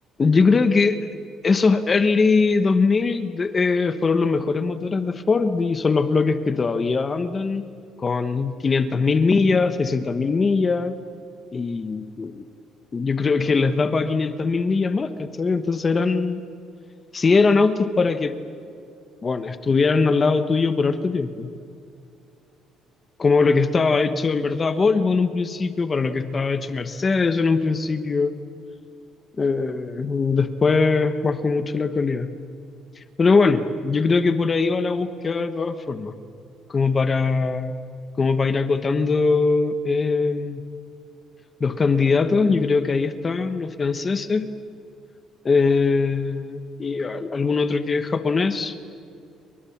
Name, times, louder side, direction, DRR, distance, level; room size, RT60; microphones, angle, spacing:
voice 1, 0.2-1.0 1.4-7.6 8.0-11.0 11.5-12.4 12.9-16.4 17.1-18.3 19.2-21.5 23.2-28.3 29.4-32.3 33.2-36.1 36.7-37.7 38.2-40.6 41.6-44.5 45.4-48.7, left 4 dB, 25° left, 10 dB, 1.1 m, -21 dB
29.5 x 24.0 x 7.3 m, 2.4 s
cardioid pair, 150°, 0 cm